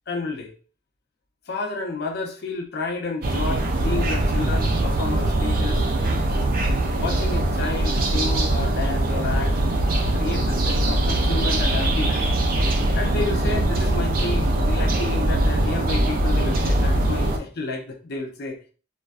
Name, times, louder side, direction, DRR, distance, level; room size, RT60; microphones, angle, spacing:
voice 1, 0.1-0.5 1.5-5.9 6.9-9.6 10.1-12.3 13.0-18.6, left 3 dB, 50° left, 0.4 m, -31 dB
sound 1, 3.2-17.4, right 1 dB, 45° right, 0.4 m, -22 dB
2.3 x 2.1 x 2.4 m
head